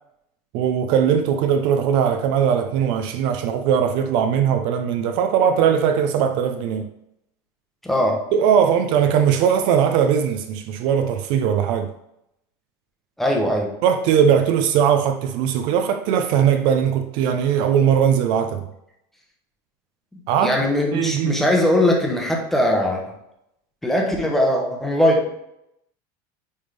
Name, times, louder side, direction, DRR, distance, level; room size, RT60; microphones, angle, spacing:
voice 1, 0.5-6.9 8.3-11.9 13.8-18.7 20.3-20.6 20.9-21.5, right 8 dB, 50° right, 0.5 m, -19 dB
voice 2, 7.8-8.3 13.2-13.7 20.1-23.0 23.8-25.3, left 1 dB, ahead, 0.8 m, -20 dB
9.6 x 3.5 x 3.3 m
cardioid pair, 175°, 11 cm